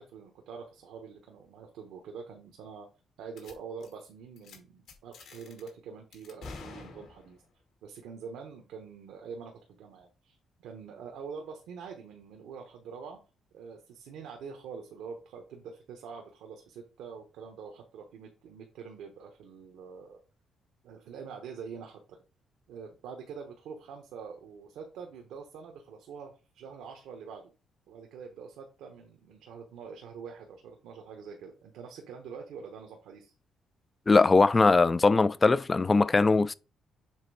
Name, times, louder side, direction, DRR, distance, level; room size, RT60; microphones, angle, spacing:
voice 1, 0.0-2.9 3.2-7.4 7.8-13.2 13.5-20.2 20.8-22.2 22.7-27.5 27.9-33.3, right 6 dB, 85° right, 1.2 m, -45 dB
sound 1, 3.4-3.5 3.8-4.1 4.4-4.6 4.9-5.7 6.1-7.5, left 3 dB, 75° left, 2.3 m, -47 dB
voice 2, 34.1-36.5, left 3 dB, 25° left, 0.4 m, -21 dB
7.4 x 3.4 x 4.8 m
cardioid pair, 90°, 0 cm